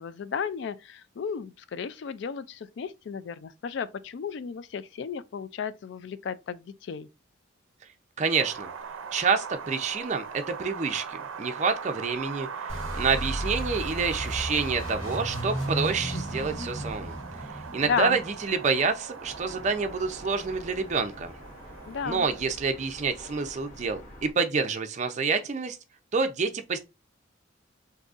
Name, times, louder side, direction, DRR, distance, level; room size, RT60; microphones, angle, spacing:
voice 1, 0.0-7.1 17.8-18.2 21.8-22.3, left 6 dB, 60° left, 0.3 m, -34 dB
voice 2, 8.2-8.7 9.1-17.2 17.7-21.3 22.0-25.8 26.1-26.8, right 5 dB, 35° right, 0.4 m, -28 dB
Wind, 8.3-22.4, right 6 dB, 90° right, 0.5 m, -40 dB
sound 1, 12.7-19.3, right 1 dB, 80° left, 1.4 m, -35 dB
sound 2, 19.2-24.3, left 1 dB, 40° left, 1.0 m, -47 dB
3.8 x 2.7 x 2.4 m
head